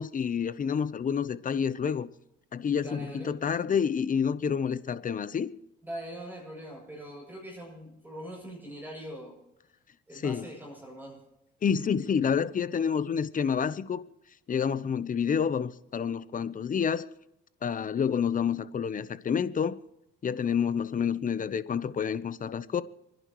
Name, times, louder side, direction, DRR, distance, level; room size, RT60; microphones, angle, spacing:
voice 1, 0.0-2.1 2.5-5.5 10.2-10.4 11.6-14.0 14.5-17.0 17.6-19.7 20.2-22.8, left 7 dB, 40° left, 0.8 m, -28 dB
voice 2, 2.8-3.3 5.8-9.4 10.1-11.2, right 1 dB, 10° right, 7.6 m, -42 dB
29.5 x 11.0 x 3.1 m
cardioid pair, 90°, 20 cm